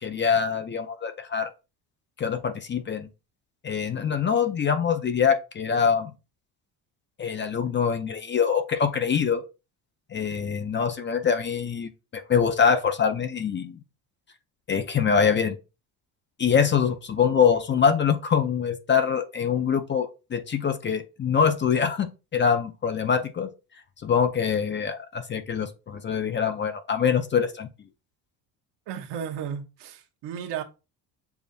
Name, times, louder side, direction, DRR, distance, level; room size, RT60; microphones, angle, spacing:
voice 1, 0.0-1.5 2.2-3.1 3.6-6.1 7.2-9.4 10.1-13.8 14.7-15.6 16.4-23.5 24.0-27.7, left 7 dB, 25° left, 0.5 m, -24 dB
voice 2, 28.9-30.6, right 8 dB, 70° right, 1.0 m, -34 dB
7.0 x 2.5 x 2.6 m
cardioid pair, 110°, 44 cm